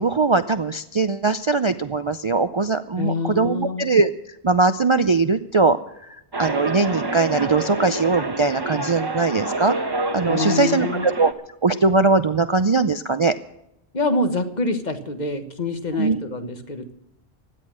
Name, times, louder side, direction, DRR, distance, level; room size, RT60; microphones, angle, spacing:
voice 1, 0.0-4.1 4.4-5.8 6.4-9.8 10.1-11.3 11.6-13.3 16.0-16.2, right 3 dB, 40° right, 11 dB, 0.4 m, -20 dB
voice 2, 3.0-3.8 10.3-11.1 13.9-17.0, left 2 dB, 40° left, 9 dB, 1.4 m, -26 dB
sound 1, 6.3-11.3, right 2 dB, 25° right, 1.0 m, -27 dB
16.5 x 11.0 x 6.3 m, 0.84 s
omnidirectional pair, 1.1 m